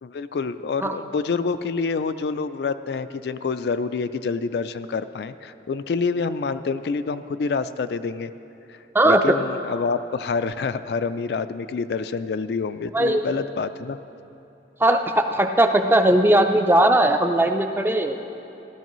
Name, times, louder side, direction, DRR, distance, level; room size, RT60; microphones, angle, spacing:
voice 1, 0.0-8.3 8.7-8.8 9.0-14.0, left 4 dB, 65° left, 12 dB, 0.3 m, -27 dB
voice 2, 8.9-9.4 12.9-13.3 14.8-18.2, right 1 dB, 10° right, 6 dB, 0.4 m, -18 dB
15.0 x 13.0 x 3.1 m, 2.9 s
head